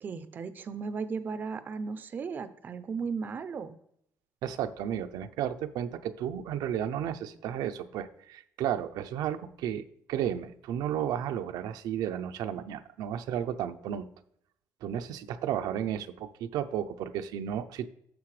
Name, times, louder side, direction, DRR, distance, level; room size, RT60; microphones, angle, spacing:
voice 1, 0.0-3.8, right 5 dB, 30° right, 12 dB, 0.5 m, -36 dB
voice 2, 4.4-9.8 10.1-14.1 14.8-17.9, right 10 dB, 75° right, 8 dB, 0.5 m, -33 dB
9.5 x 6.7 x 3.2 m, 0.71 s
cardioid pair, 175°, 7 cm